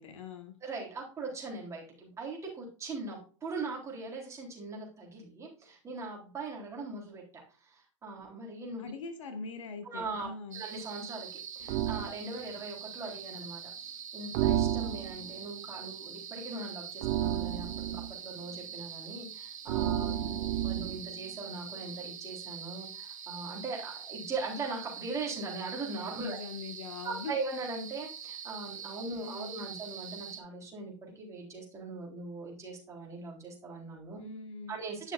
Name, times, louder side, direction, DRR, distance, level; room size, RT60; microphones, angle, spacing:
voice 1, 0.0-0.5 8.8-10.6 19.7-20.4 26.2-27.4 29.1-29.6 34.1-34.8, left 4 dB, 75° left, 6 dB, 1.8 m, -42 dB
voice 2, 0.6-7.2 7.6-8.9 9.8-10.3 10.5-26.4 27.0-34.2 34.7-35.1, right 3 dB, 20° right, -2 dB, 3.8 m, -40 dB
sound 1, 10.5-30.4, right 7 dB, 85° right, 2.2 m, -44 dB
sound 2, 11.7-12.1 14.3-15.3 17.0-18.1 19.7-21.0, right 12 dB, 50° right, 0.7 m, -31 dB
10.5 x 6.7 x 2.6 m, 0.39 s
hypercardioid pair, 120°, 16 cm